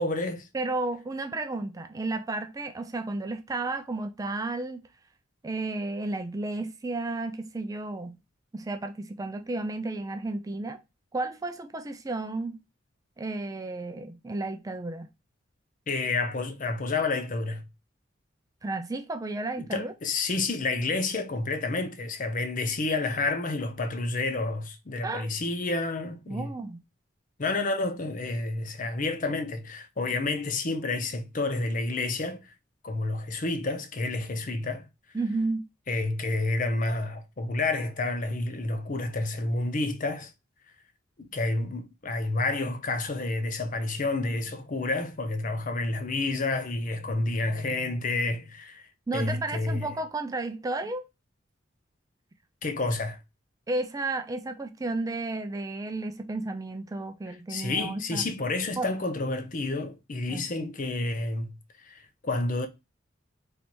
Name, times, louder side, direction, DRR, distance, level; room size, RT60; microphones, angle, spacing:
voice 1, 0.0-0.5 15.9-17.6 19.7-26.5 27.4-32.4 32.8-34.8 35.9-40.3 41.2-49.9 52.6-53.2 57.5-61.5 61.8-62.7, left 2 dB, 45° left, 0.6 m, -29 dB
voice 2, 0.5-4.9 5.4-8.2 8.5-10.8 11.1-12.6 13.2-15.1 18.6-19.9 25.0-25.3 26.3-26.8 35.1-35.6 49.1-51.0 53.7-58.2 58.8-58.9 60.3-60.7, right 2 dB, 20° right, 0.3 m, -32 dB
3.3 x 2.8 x 4.2 m
head